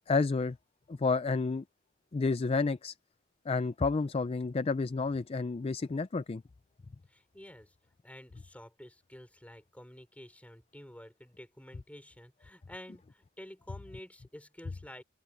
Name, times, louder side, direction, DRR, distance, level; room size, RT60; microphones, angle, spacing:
voice 1, 0.1-0.6 0.9-1.6 2.1-2.9 3.5-6.4, left 4 dB, 30° left, 0.4 m, -30 dB
voice 2, 7.1-7.7 8.0-15.0, left 1 dB, 5° left, 4.6 m, -50 dB
open air
head